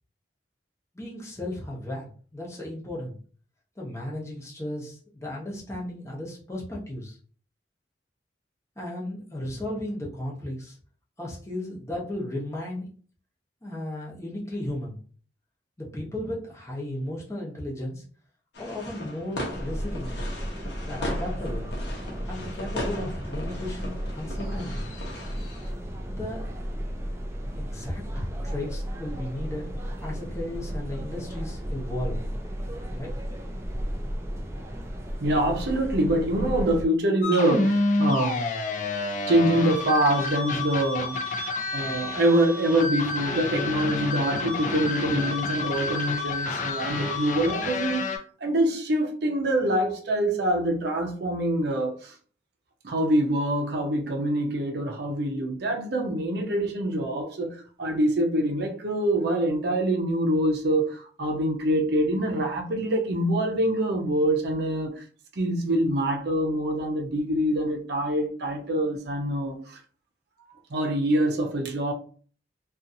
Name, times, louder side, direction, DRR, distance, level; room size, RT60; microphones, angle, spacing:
voice 1, 0.9-3.2 3.8-7.2 8.8-10.8 11.2-12.9 13.6-15.0 15.8-18.0 18.6-20.2 20.8-21.7 22.3-25.0 26.1-26.5 27.6-29.6 30.0-32.3 32.9-33.1, left 1 dB, 15° left, 0.9 m, -35 dB
sound 1, 18.5-25.7, left 1 dB, 70° left, 0.8 m, -38 dB
sound 2, 19.5-36.9, equal, 15° right, 0.3 m, -34 dB
voice 2, 35.2-38.5 39.3-41.2 41.7-48.1 48.4-52.1 52.8-65.0 65.4-69.6 70.7-71.9, right 1 dB, 65° right, 0.6 m, -25 dB
sound 3, 37.2-48.2, left 2 dB, 45° left, 0.4 m, -29 dB
2.6 x 2.4 x 2.7 m
head